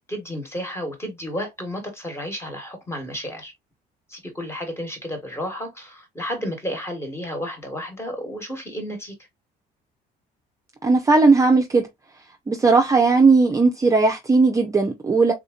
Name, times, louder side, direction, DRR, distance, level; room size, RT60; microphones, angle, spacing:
voice 1, 0.1-3.5 4.1-9.1, equal, 15° left, 1.3 m, -32 dB
voice 2, 10.8-11.8 12.5-15.3, right 3 dB, 20° right, 0.5 m, -17 dB
3.6 x 2.7 x 2.4 m
cardioid pair, 110°, 17 cm